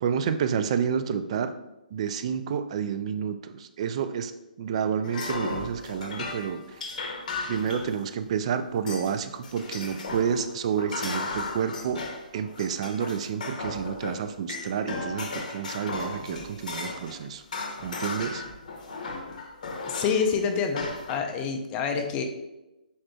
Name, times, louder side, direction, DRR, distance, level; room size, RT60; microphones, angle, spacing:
voice 1, 0.0-1.5 1.9-4.3 4.6-6.8 7.5-12.0 12.3-17.4 17.8-18.4, right 7 dB, 45° right, 10 dB, 0.3 m, -29 dB
sound 1, 5.0-8.3 8.9-9.2 9.4-17.2 17.5-20.3 20.8-21.2, left 3 dB, 55° left, 0.8 m, -35 dB
voice 2, 19.8-22.2, left 6 dB, 20° left, 4 dB, 0.5 m, -27 dB
4.8 x 4.2 x 2.3 m, 0.97 s
figure-of-eight pair, 135°, 5 cm